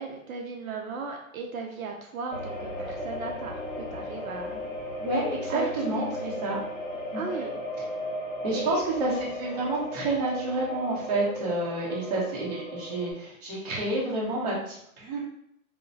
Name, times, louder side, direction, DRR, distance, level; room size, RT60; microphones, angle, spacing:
voice 1, 0.0-4.6 5.5-6.4 7.1-7.6 8.5-8.8, right 4 dB, 70° right, 2 dB, 0.5 m, -36 dB
sound 1, 2.3-13.1, left 1 dB, 35° left, 0.8 m, -36 dB
voice 2, 5.0-6.6 7.1-7.2 8.4-15.2, right 2 dB, 30° right, -5 dB, 0.7 m, -29 dB
2.8 x 2.0 x 2.6 m, 0.72 s
hypercardioid pair, 165°, 44 cm